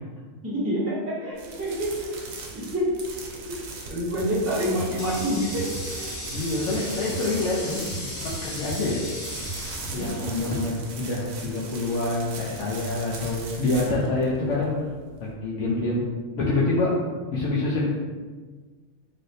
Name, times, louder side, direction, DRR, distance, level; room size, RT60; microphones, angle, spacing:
voice 1, 0.4-2.1 2.5-2.8 3.3-3.5 3.9-5.7 9.9-10.1, equal, 20° right, -7 dB, 0.4 m, -27 dB
sound 1, 1.3-15.3, right 4 dB, 85° right, 1.0 m, -40 dB
sound 2, 4.2-10.4, right 3 dB, 60° right, 0.8 m, -39 dB
Water tap faucet, 4.3-10.8, left 1 dB, 40° left, 0.6 m, -37 dB
voice 2, 6.3-8.1 8.4-9.0 9.9-14.7 15.2-16.0 16.4-16.9 17.3-17.9, left 2 dB, 70° left, -6 dB, 0.9 m, -26 dB
3.4 x 2.7 x 2.6 m, 1.4 s
omnidirectional pair, 1.4 m